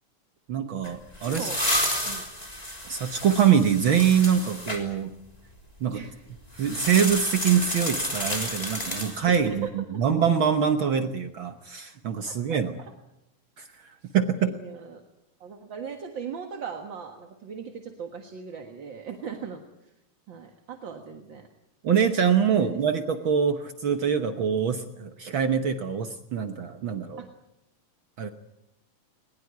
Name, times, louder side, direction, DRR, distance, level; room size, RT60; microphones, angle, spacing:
voice 1, 0.5-1.5 2.8-5.1 5.8-6.0 6.6-12.7 13.6-14.6 21.8-27.3 28.2-28.3, right 8 dB, 70° right, 8 dB, 1.2 m, -24 dB
sound 1, 0.8-4.8 6.6-9.5, left 1 dB, 10° left, 3.3 m, -31 dB
voice 2, 1.2-1.6 2.1-2.2 5.9-6.2 9.3-10.0 12.3-12.6 14.0-14.1 14.4-15.0 15.4-19.6 20.3-21.5 22.6-22.7 27.2-27.3, right 6 dB, 45° right, 4 dB, 1.8 m, -38 dB
21.0 x 21.0 x 9.4 m, 0.86 s
omnidirectional pair, 3.8 m